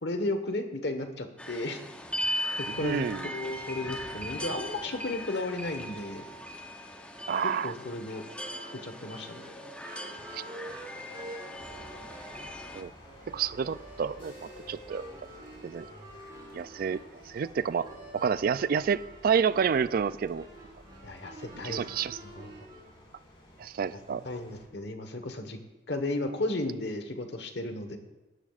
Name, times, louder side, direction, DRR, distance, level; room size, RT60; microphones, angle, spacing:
voice 1, 0.0-1.8 2.6-3.1 3.3-6.2 7.6-8.2 8.8-9.4 21.0-21.8 22.2-22.5 24.2-25.6 25.9-28.0, left 2 dB, 70° left, 7 dB, 1.3 m, -34 dB
sound 1, 1.4-12.8, equal, 5° left, 0.7 m, -39 dB
voice 2, 2.7-3.3 7.3-7.7 10.3-10.4 12.7-12.9 13.3-15.0 15.6-15.8 16.5-17.0 17.3-17.9 18.1-20.4 21.6-22.2 23.6-24.2, right 6 dB, 55° right, 16 dB, 0.3 m, -29 dB
sound 2, 6.2-22.9, right 1 dB, 30° right, 3.6 m, -48 dB
sound 3, 11.6-24.7, equal, 35° left, 4.5 m, -54 dB
18.0 x 12.5 x 2.5 m, 1.1 s
head